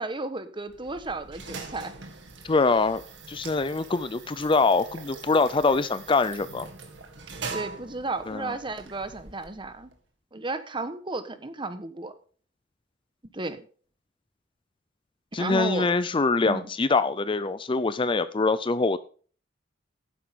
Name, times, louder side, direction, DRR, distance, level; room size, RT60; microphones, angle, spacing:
voice 1, 0.0-1.9 7.5-9.9 10.3-12.1 13.3-13.6 15.4-15.9 16.4-16.7, right 2 dB, 25° right, 1.2 m, -33 dB
sound 1, 0.7-10.0, right 4 dB, 70° right, 2.3 m, -42 dB
voice 2, 2.4-3.0 3.3-6.7 8.3-8.5 15.3-19.0, left 3 dB, 25° left, 0.5 m, -24 dB
12.5 x 10.0 x 3.7 m
head